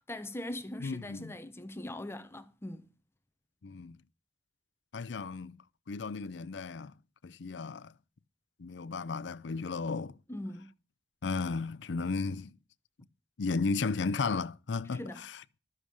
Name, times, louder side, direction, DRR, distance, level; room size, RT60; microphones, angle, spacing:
voice 1, 0.0-2.9 10.3-10.7 14.9-15.2, left 1 dB, 15° left, 0.9 m, -41 dB
voice 2, 0.8-1.4 3.6-4.0 4.9-5.6 5.9-6.9 7.2-7.9 8.6-10.2 11.2-12.6 13.4-15.4, left 4 dB, 80° left, 0.5 m, -34 dB
12.5 x 7.4 x 6.2 m
head